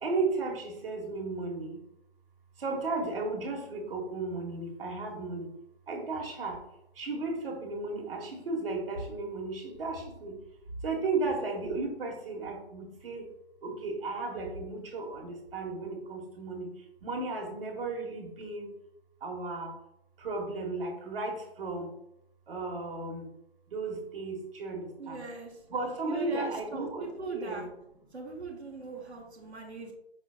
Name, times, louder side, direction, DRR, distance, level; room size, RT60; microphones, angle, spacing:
voice 1, 0.0-1.7 2.6-5.5 5.9-6.6 7.0-10.3 10.8-13.2 13.6-16.7 17.0-18.7 19.2-19.7 20.2-21.9 22.5-23.3 23.7-25.2 25.7-27.6, right 3 dB, 60° right, 1 dB, 1.3 m, -34 dB
voice 2, 25.0-25.5 26.1-27.7 28.1-29.9, right 3 dB, 90° right, -1 dB, 1.2 m, -40 dB
5.5 x 4.0 x 2.3 m, 0.84 s
figure-of-eight pair, 145°, 32 cm